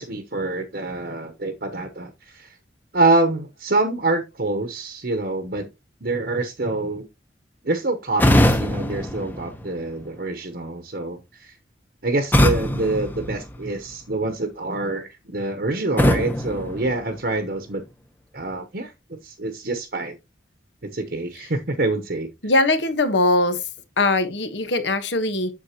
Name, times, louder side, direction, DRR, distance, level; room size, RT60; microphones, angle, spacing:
voice 1, 0.0-2.6 2.9-5.7 6.0-7.1 7.6-11.6 12.0-17.8 18.3-18.9 19.2-20.2 20.8-22.3, right 2 dB, 60° right, 0.9 m, -26 dB
sound 1, 8.2-10.2 12.3-14.0 16.0-17.6, left 1 dB, 10° left, 0.8 m, -22 dB
voice 2, 22.4-23.6 24.0-25.5, left 2 dB, 80° left, 1.2 m, -21 dB
8.1 x 6.8 x 2.9 m
head